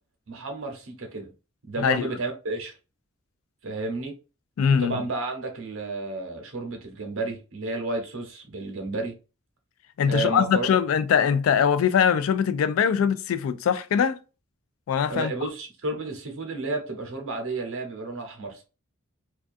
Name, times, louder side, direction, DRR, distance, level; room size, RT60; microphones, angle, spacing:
voice 1, 0.3-1.3 1.7-2.7 3.6-4.1 4.8-9.1 10.1-10.7 15.1-18.6, right 2 dB, 75° right, 0.8 m, -32 dB
voice 2, 1.8-2.1 4.6-5.0 10.0-14.2 14.9-15.5, left 7 dB, 85° left, 0.3 m, -22 dB
2.3 x 2.3 x 2.5 m
head